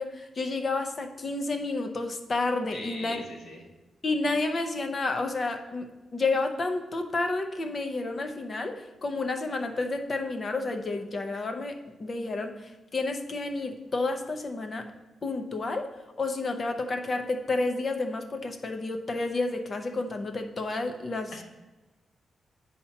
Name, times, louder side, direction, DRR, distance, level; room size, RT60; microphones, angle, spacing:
voice 1, 0.0-3.2 4.0-14.9 15.2-15.9 16.2-21.4, left 3 dB, 35° left, 6 dB, 0.6 m, -30 dB
voice 2, 2.7-3.6 21.3-21.4, left 2 dB, 80° left, 1 dB, 1.3 m, -40 dB
8.4 x 2.8 x 5.7 m, 1.1 s
wide cardioid pair, 150°, 0 cm